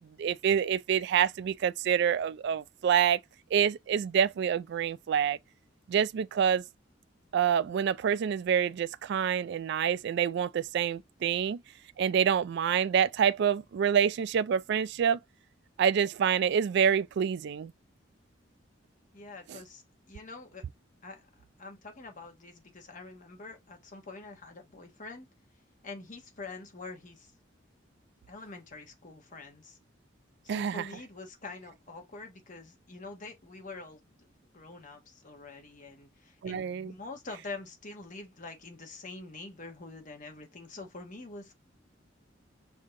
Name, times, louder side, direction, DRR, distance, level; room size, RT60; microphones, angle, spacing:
voice 1, 0.2-3.2 3.5-5.4 5.9-6.6 7.3-11.6 12.0-15.2 15.8-17.7 19.5-19.6 30.5-30.9 36.4-36.9, right 8 dB, 60° right, 0.3 m, -27 dB
voice 2, 19.1-19.8 20.1-20.6 21.0-21.3 21.6-25.3 25.8-27.3 28.3-29.8 30.4-34.2 34.5-41.5, left 3 dB, 45° left, 1.3 m, -45 dB
5.1 x 2.8 x 3.6 m
head